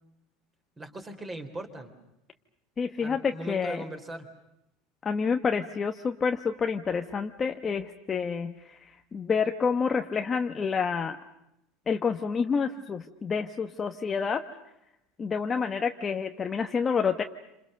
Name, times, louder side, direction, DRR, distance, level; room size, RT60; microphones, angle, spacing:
voice 1, 0.8-1.9 3.0-4.3, right 1 dB, 15° right, 7 dB, 3.5 m, -39 dB
voice 2, 2.8-3.8 5.0-11.2 11.9-14.4 15.2-17.2, left 5 dB, 20° left, 6 dB, 1.0 m, -28 dB
29.5 x 27.0 x 6.6 m, 0.86 s
cardioid pair, 165°, 0 cm